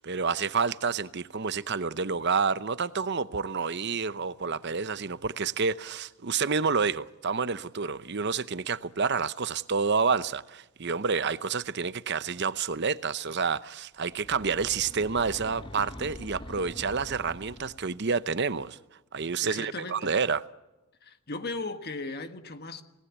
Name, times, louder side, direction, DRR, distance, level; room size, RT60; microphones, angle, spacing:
voice 1, 0.0-18.8 19.1-20.4, right 5 dB, 50° right, 0.8 m, -29 dB
sound 1, 14.1-18.0, left 1 dB, 25° left, 1.1 m, -44 dB
voice 2, 19.4-20.2 21.0-22.8, left 3 dB, 45° left, 1.5 m, -37 dB
28.0 x 19.0 x 8.3 m
head